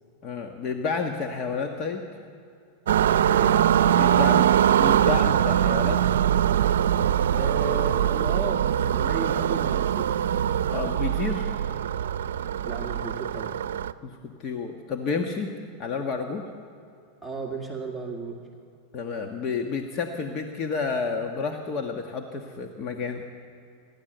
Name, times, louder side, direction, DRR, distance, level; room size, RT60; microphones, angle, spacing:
voice 1, 0.2-2.1 3.9-6.0 10.7-11.5 14.0-15.5 15.8-16.5 18.9-23.2, left 5 dB, 40° left, 3 dB, 1.5 m, -30 dB
sound 1, 2.9-13.9, right 10 dB, 85° right, 0.5 m, -22 dB
voice 2, 3.1-3.6 7.3-10.2 12.6-13.6 17.2-18.4, right 3 dB, ahead, -3 dB, 2.1 m, -34 dB
27.5 x 12.0 x 7.9 m, 2.5 s
hypercardioid pair, 120°, 0 cm